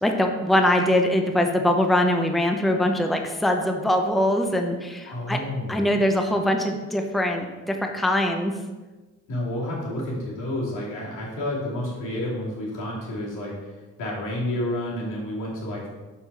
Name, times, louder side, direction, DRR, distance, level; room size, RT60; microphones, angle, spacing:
voice 1, 0.0-5.4 5.7-8.5, left 1 dB, ahead, 4 dB, 0.7 m, -22 dB
voice 2, 5.1-5.9 9.3-15.9, left 1 dB, 85° left, -4 dB, 2.5 m, -30 dB
6.6 x 5.6 x 4.1 m, 1.2 s
cardioid pair, 90°, 30 cm